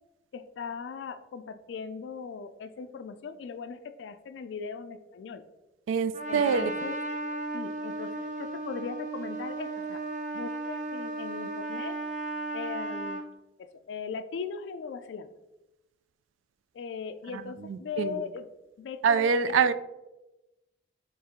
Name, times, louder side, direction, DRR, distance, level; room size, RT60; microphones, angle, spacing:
voice 1, 0.3-5.4 6.3-7.0 7.5-10.0 10.3-12.0 12.5-13.3 13.6-15.3 16.7-18.5 18.8-19.3, left 5 dB, 70° left, 11 dB, 0.3 m, -39 dB
voice 2, 5.9-6.7 17.3-18.2 19.0-19.7, right 6 dB, 85° right, 13 dB, 0.3 m, -25 dB
Trumpet, 6.1-13.3, right 2 dB, 40° right, 0.6 m, -35 dB
4.3 x 3.1 x 3.7 m, 1.0 s
head